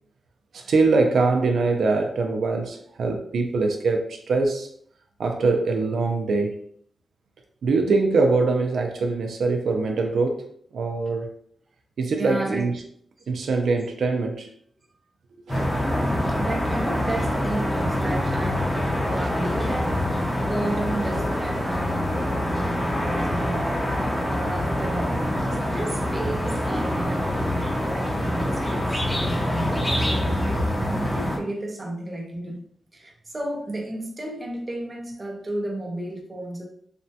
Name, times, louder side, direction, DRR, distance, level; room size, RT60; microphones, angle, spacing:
voice 1, 0.5-4.7 5.2-6.6 7.6-10.4 10.7-11.3 12.0-12.8 13.3-14.5 15.5-15.7, right 3 dB, 85° right, 3 dB, 0.4 m, -23 dB
voice 2, 12.1-12.7 15.8-32.7 32.9-36.7, right 1 dB, 25° right, 0 dB, 0.5 m, -33 dB
sound 1, 15.5-31.4, left 1 dB, 15° left, 0.7 m, -25 dB
3.2 x 2.1 x 2.7 m, 0.63 s
wide cardioid pair, 150°, 0 cm